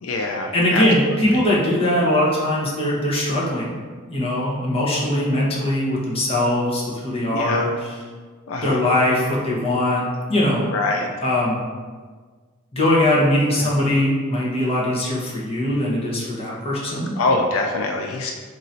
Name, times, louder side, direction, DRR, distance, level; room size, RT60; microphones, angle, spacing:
voice 1, 0.0-0.8 1.3-1.4 7.3-7.7 8.5-8.8 10.7-11.1 13.6-13.7 17.2-18.3, left 2 dB, 85° left, 3 dB, 0.4 m, -24 dB
voice 2, 0.5-3.7 4.1-7.9 8.6-10.0 10.3-10.6 11.2-11.6 12.7-17.1, left 1 dB, 30° left, -5 dB, 1.0 m, -21 dB
3.8 x 2.6 x 4.3 m, 1.5 s
head